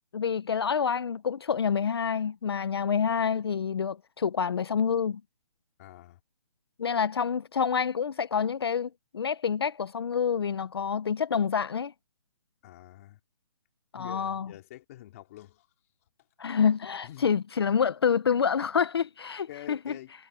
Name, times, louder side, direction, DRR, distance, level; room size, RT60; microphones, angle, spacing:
voice 1, 0.1-5.2 6.8-11.9 13.9-14.5 16.4-20.0, left 7 dB, 40° left, 0.8 m, -27 dB
voice 2, 5.8-6.2 12.6-13.2 13.9-15.7 17.0-17.3 19.5-20.1, left 14 dB, 20° left, 2.9 m, -46 dB
hypercardioid pair, 175°, 20 cm